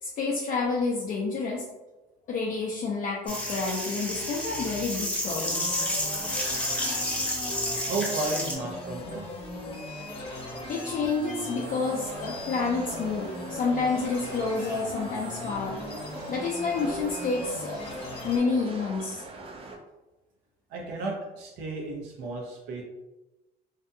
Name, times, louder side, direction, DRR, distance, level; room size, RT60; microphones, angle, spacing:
voice 1, 0.0-1.6 2.3-5.8 10.7-15.8 16.3-17.8 18.2-19.2, left 4 dB, 50° left, -3 dB, 0.4 m, -29 dB
sound 1, 3.3-8.5, left 1 dB, 10° left, 0.7 m, -30 dB
sound 2, 5.2-18.4, left 1 dB, 35° left, 0.8 m, -38 dB
voice 2, 7.8-9.2 20.7-22.8, right 3 dB, 90° right, -1 dB, 0.7 m, -33 dB
sound 3, 11.4-19.8, right 2 dB, 35° right, 0.4 m, -42 dB
2.6 x 2.3 x 2.6 m, 1.1 s
cardioid pair, 110°, 17 cm